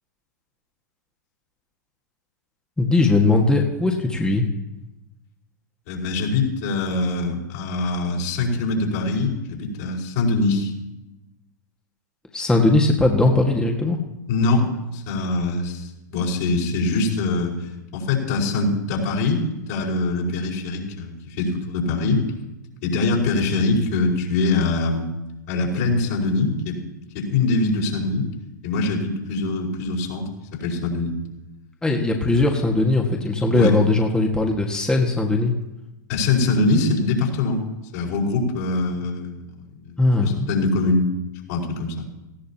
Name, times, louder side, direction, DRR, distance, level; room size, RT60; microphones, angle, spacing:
voice 1, 2.8-4.4 12.3-14.0 31.8-35.5 40.0-40.5, left 2 dB, 10° left, 1 dB, 1.8 m, -19 dB
voice 2, 5.9-10.7 14.3-19.4 19.7-22.2 22.8-25.1 25.5-26.8 27.1-28.3 28.6-31.2 33.5-33.8 36.1-37.6 37.9-39.4 39.8-41.1 41.5-42.1, left 3 dB, 55° left, -4 dB, 5.2 m, -23 dB
18.5 x 16.5 x 3.0 m, 0.97 s
figure-of-eight pair, 95°, 10 cm